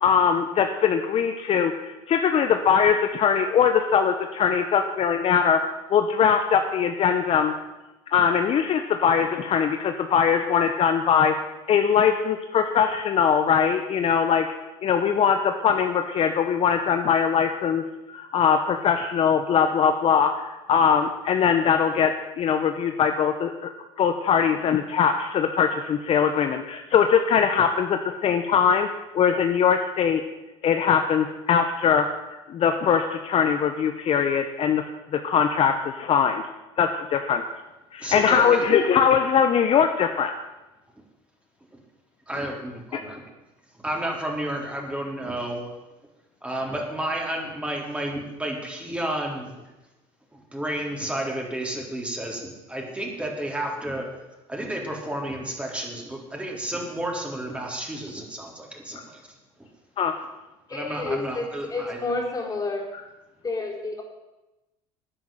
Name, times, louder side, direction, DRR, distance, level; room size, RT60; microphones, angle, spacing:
voice 1, 0.0-5.6 5.9-7.5 8.1-11.3 11.7-14.5 14.8-17.8 18.1-22.1 22.4-23.7 24.0-28.9 29.1-30.2 30.6-32.1 32.5-34.8 35.2-36.4 36.8-37.4 37.9-40.3 42.9-43.0 60.0-60.1, left 7 dB, 50° left, 6 dB, 1.2 m, -21 dB
voice 2, 38.0-38.5 42.3-43.2 43.8-45.7 46.4-49.7 50.3-54.1 54.5-59.4 60.7-62.0, right 1 dB, 10° right, 0 dB, 4.1 m, -31 dB
voice 3, 60.7-61.4 61.7-62.8 63.4-64.0, left 3 dB, 25° left, 1 dB, 4.5 m, -29 dB
11.5 x 9.3 x 9.2 m, 1.0 s
supercardioid pair, 90°, 13 cm